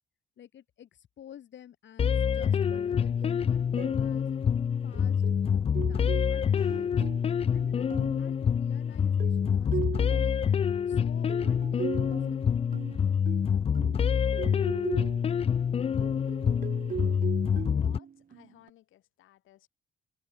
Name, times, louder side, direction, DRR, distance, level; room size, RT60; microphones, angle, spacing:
voice 1, 0.4-4.3 4.8-7.0 7.5-12.6, left 10 dB, 65° left, 5.3 m, -51 dB
sound 1, 2.0-18.0, left 7 dB, 30° left, 0.4 m, -27 dB
sound 2, 2.4-2.9 3.2-3.4 3.8-4.0 4.9-8.3 9.0-10.5 11.3-15.3 16.0-18.7, right 7 dB, 45° right, 1.3 m, -39 dB
sound 3, 6.5-7.1, right 15 dB, 85° right, 3.2 m, -59 dB
voice 2, 17.7-19.7, left 14 dB, 85° left, 5.6 m, -59 dB
cardioid pair, 90°, 20 cm